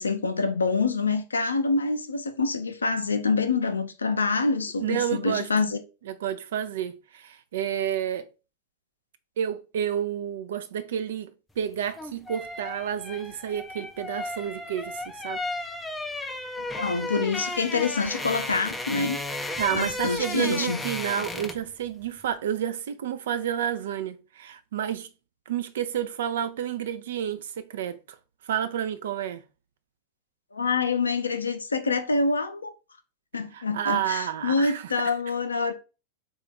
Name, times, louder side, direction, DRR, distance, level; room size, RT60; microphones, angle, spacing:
voice 1, 0.0-5.8 16.6-19.2 19.7-20.8 30.5-32.7 33.3-35.7, left 4 dB, 75° left, 0.5 m, -26 dB
voice 2, 4.8-5.5 6.1-8.3 9.4-15.4 19.6-25.1 25.5-28.0 28.4-29.4 33.5-34.9, right 9 dB, 60° right, 0.4 m, -30 dB
sound 1, 11.7-21.7 22.0-22.2, left 2 dB, 10° left, 0.4 m, -34 dB
4.1 x 2.4 x 4.4 m
figure-of-eight pair, 90°, 0 cm